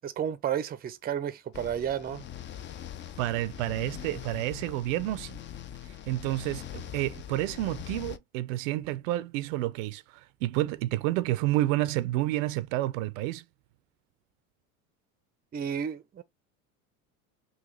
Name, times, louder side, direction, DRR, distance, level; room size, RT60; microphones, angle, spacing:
voice 1, 0.0-2.3 15.5-16.2, right 9 dB, 25° right, 0.5 m, -32 dB
sound 1, 1.5-8.2, left 10 dB, 30° left, 0.4 m, -42 dB
voice 2, 3.2-5.4 6.1-13.4, right 16 dB, 70° right, 0.5 m, -30 dB
3.8 x 2.3 x 3.1 m
hypercardioid pair, 85°, 40 cm